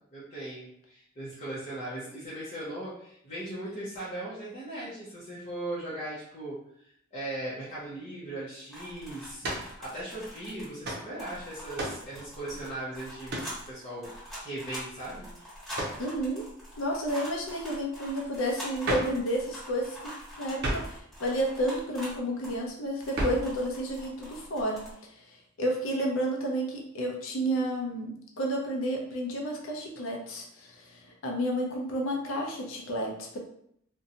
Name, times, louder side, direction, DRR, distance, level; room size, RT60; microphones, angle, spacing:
voice 1, 0.1-9.4 9.8-15.3, right 1 dB, 35° left, -10 dB, 0.7 m, -38 dB
sound 1, 8.7-10.9 11.2-22.7 23.0-24.9, equal, 5° left, 1.3 m, -44 dB
sound 2, 9.4-9.7 10.8-11.1 11.8-12.1 13.3-13.6 15.7-16.1 18.8-19.2 20.6-21.0 23.1-23.5, right 1 dB, 55° right, 0.6 m, -32 dB
voice 2, 16.0-16.5 16.8-24.8 25.2-33.4, equal, 75° left, 0 dB, 0.5 m, -31 dB
2.6 x 2.2 x 2.7 m, 0.71 s
head